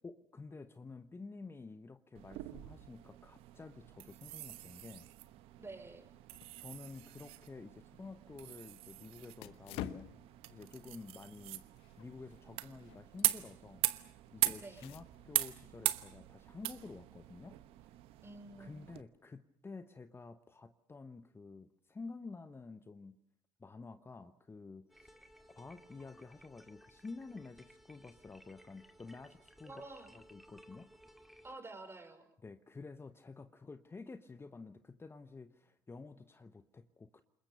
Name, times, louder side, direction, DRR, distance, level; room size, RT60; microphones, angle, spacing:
voice 1, 0.0-5.1 6.6-10.1 10.5-11.6 12.0-13.9 14.3-17.6 17.9-18.0 18.6-23.1 23.6-25.2 25.5-29.7 30.1-30.9 32.4-37.2, left 4 dB, 25° left, 11 dB, 1.1 m, -50 dB
sound 1, 2.1-19.0, right 17 dB, 70° right, 1.1 m, -41 dB
voice 2, 5.6-6.1 14.6-14.9 18.2-18.8 29.6-30.1 31.4-32.3, right 2 dB, 25° right, 6 dB, 5.3 m, -49 dB
sound 2, 6.3-15.5, left 11 dB, 70° left, 1.1 m, -51 dB
sound 3, 24.9-31.5, equal, ahead, 2.0 m, -60 dB
29.0 x 21.0 x 6.8 m, 0.66 s
hypercardioid pair, 60°, 10 cm